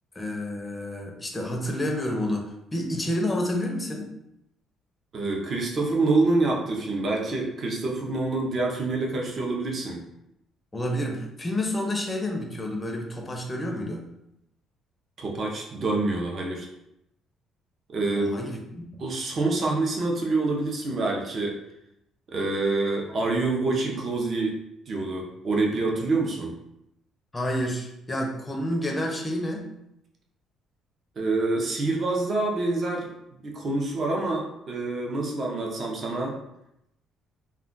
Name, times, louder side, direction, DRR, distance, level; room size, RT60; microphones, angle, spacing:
voice 1, 0.2-4.1 10.7-14.0 18.2-19.0 27.3-29.7, left 1 dB, 15° left, 1 dB, 0.5 m, -29 dB
voice 2, 5.1-10.0 15.2-16.7 17.9-18.4 19.0-21.6 22.3-24.6 24.9-26.5 31.2-33.1 33.4-36.3, right 2 dB, 35° right, 0 dB, 0.6 m, -26 dB
2.3 x 2.2 x 3.7 m, 0.82 s
cardioid pair, 140°, 0 cm